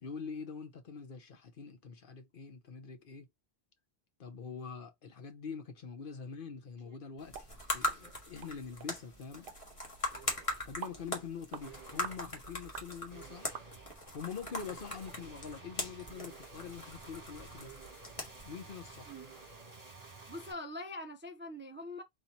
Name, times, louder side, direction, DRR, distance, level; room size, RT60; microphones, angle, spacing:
voice 1, 0.0-3.3 4.2-7.5 7.7-9.5 10.6-13.5 14.1-17.7 18.4-19.1, left 6 dB, 60° left, 1.0 m, -44 dB
sound 1, 6.8-7.0 7.4-8.1 8.6-9.0 10.1-10.7 11.6-20.5, right 4 dB, 40° right, 1.5 m, -53 dB
sound 2, 7.2-19.7, left 1 dB, 35° left, 1.6 m, -41 dB
sound 3, 7.3-7.5 7.9-8.0 8.4-8.5 8.8-8.9 9.5-9.6 10.1-10.2 10.8-11.0 11.5-11.7 12.0-12.2 12.7-12.9 13.5-14.0 14.5-14.6 15.1-15.2 15.6-15.7, right 7 dB, 65° right, 0.8 m, -46 dB
voice 2, 20.3-22.0, left 1 dB, 15° right, 0.4 m, -43 dB
4.3 x 2.7 x 4.0 m
omnidirectional pair, 1.0 m